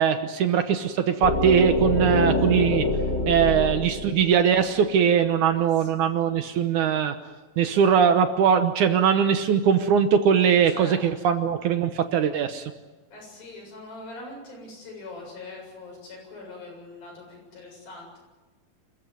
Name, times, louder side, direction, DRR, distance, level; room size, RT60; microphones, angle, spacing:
voice 1, 0.0-2.9 3.3-7.1 7.6-12.7, right 7 dB, 70° right, 8 dB, 2.2 m, -21 dB
sound 1, 1.2-5.1, left 2 dB, 20° left, 1.2 m, -25 dB
voice 2, 3.3-4.1 5.5-5.9 10.7-11.0 13.1-18.2, left 2 dB, 80° left, -1 dB, 9.3 m, -42 dB
26.5 x 15.0 x 9.5 m, 1.2 s
omnidirectional pair, 4.2 m